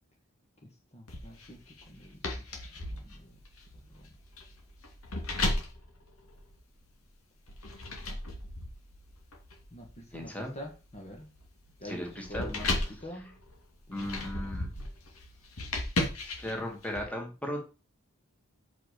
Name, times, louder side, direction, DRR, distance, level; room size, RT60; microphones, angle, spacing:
voice 1, 0.6-3.4 3.9-4.1 9.7-11.3 11.8-13.4 13.9-14.0 14.4-14.9, equal, 30° left, 1.7 m, -46 dB
sound 1, 1.1-6.9 7.5-17.0, left 2 dB, 80° left, 2.7 m, -36 dB
voice 2, 10.1-10.5 11.8-12.5 13.9-14.7 16.2-17.6, left 1 dB, 5° left, 2.2 m, -36 dB
6.7 x 5.8 x 6.7 m
head